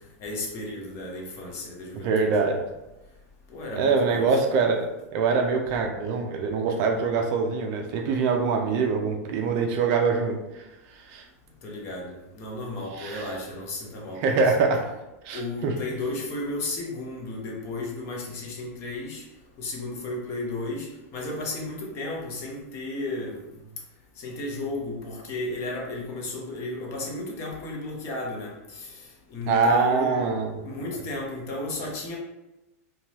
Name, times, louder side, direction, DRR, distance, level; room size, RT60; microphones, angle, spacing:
voice 1, 0.2-2.4 3.5-4.4 11.6-14.4 15.3-19.2 19.6-23.6 24.2-30.1 30.6-32.2, left 2 dB, 35° left, -1 dB, 0.7 m, -34 dB
voice 2, 2.0-2.6 3.8-10.4 11.1-11.2 12.9-13.3 14.2-14.9 15.2-15.8 29.5-30.6, right 4 dB, 40° right, 3 dB, 0.4 m, -24 dB
2.9 x 2.2 x 2.7 m, 0.99 s
supercardioid pair, 140°, 8 cm